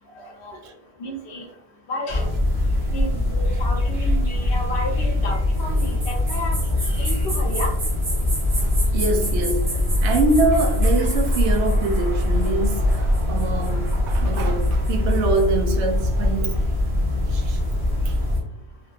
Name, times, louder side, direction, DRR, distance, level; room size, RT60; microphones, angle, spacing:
voice 1, 0.2-0.6 1.0-1.5 1.9-2.3 2.9-6.6 7.0-7.7, equal, 70° left, 1 dB, 1.0 m, -32 dB
sound 1, 2.1-18.4, left 1 dB, 60° right, 1.3 m, -22 dB
voice 2, 8.9-16.6 17.3-17.6 18.0-18.2, right 3 dB, 80° right, 3 dB, 0.9 m, -24 dB
3.4 x 2.8 x 2.4 m, 0.78 s
omnidirectional pair, 1.2 m